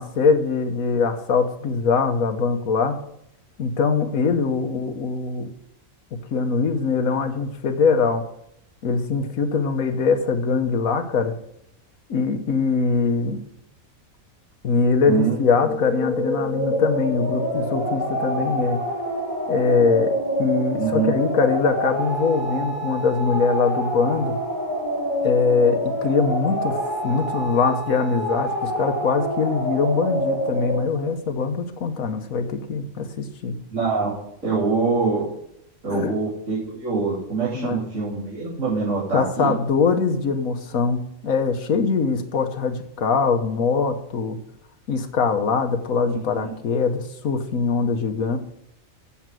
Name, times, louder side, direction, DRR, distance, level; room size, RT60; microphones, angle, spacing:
voice 1, 0.0-3.0 3.6-5.5 6.3-8.2 8.8-11.3 12.1-13.4 14.6-18.8 19.5-20.1 20.4-24.4 25.2-33.5 35.9-36.2 37.5-37.8 39.1-44.4 44.9-48.4, left 5 dB, 85° left, 6 dB, 1.5 m, -22 dB
voice 2, 15.1-15.4 20.8-21.1 33.7-34.1 34.4-35.2 35.8-39.5 46.0-46.5, right 4 dB, 70° right, -10 dB, 3.5 m, -24 dB
sound 1, 15.5-30.8, equal, 25° right, 4.7 m, -27 dB
7.2 x 7.2 x 7.6 m, 0.75 s
omnidirectional pair, 1.4 m